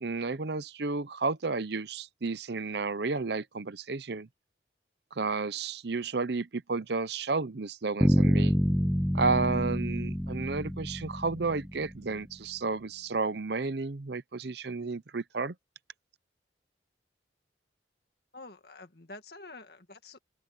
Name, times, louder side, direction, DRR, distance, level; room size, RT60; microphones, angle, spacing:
voice 1, 0.0-4.3 5.2-8.5 9.1-15.5, right 4 dB, 60° right, 0.7 m, -32 dB
Bass guitar, 8.0-12.0, equal, ahead, 0.6 m, -27 dB
voice 2, 18.3-20.2, left 2 dB, 55° left, 2.1 m, -48 dB
open air
head